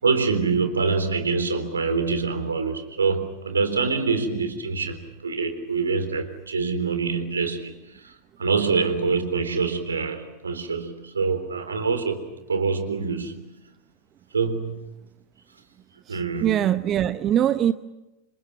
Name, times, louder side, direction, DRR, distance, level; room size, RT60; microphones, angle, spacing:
voice 1, 0.0-8.1 8.4-13.4 14.3-14.9 16.1-16.7, right 4 dB, 75° right, 9 dB, 3.7 m, -25 dB
voice 2, 16.1-17.7, right 11 dB, 30° right, 13 dB, 0.8 m, -22 dB
29.5 x 28.0 x 6.1 m, 0.98 s
figure-of-eight pair, 90°, 0 cm